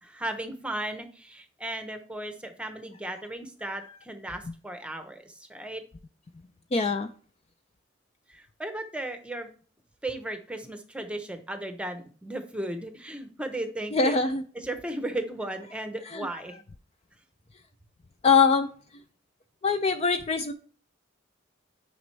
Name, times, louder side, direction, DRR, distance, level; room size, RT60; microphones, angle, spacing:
voice 1, 0.0-5.8 8.3-9.5 10.0-14.2 14.5-16.6, right 1 dB, 5° right, 7 dB, 0.8 m, -35 dB
voice 2, 6.7-7.1 13.9-14.4 16.1-16.3 18.2-18.7 19.6-20.5, left 5 dB, 30° left, 8 dB, 0.3 m, -22 dB
9.3 x 5.0 x 3.3 m, 0.43 s
head